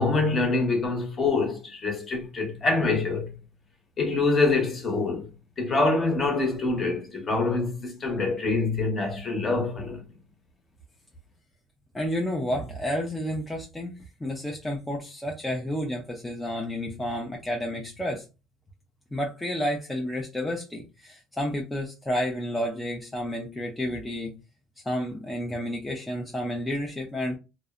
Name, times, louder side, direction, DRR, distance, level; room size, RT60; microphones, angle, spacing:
voice 1, 0.0-3.4 4.0-5.3 5.6-10.0, left 3 dB, 30° left, 0.8 m, -25 dB
voice 2, 11.9-13.9 14.2-18.2 19.1-24.3 24.9-27.4, equal, 10° left, 0.4 m, -30 dB
2.6 x 2.0 x 2.4 m
cardioid pair, 130°, 0 cm